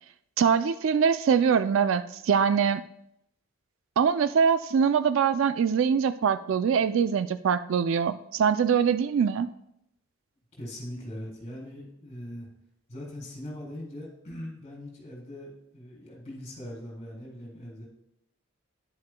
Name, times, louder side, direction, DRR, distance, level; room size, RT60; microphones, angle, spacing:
voice 1, 0.4-2.8 4.0-9.5, right 6 dB, 65° right, 13 dB, 0.3 m, -23 dB
voice 2, 10.6-12.5 12.9-17.9, left 1 dB, 30° left, -3 dB, 3.2 m, -41 dB
10.5 x 10.5 x 2.2 m, 0.78 s
head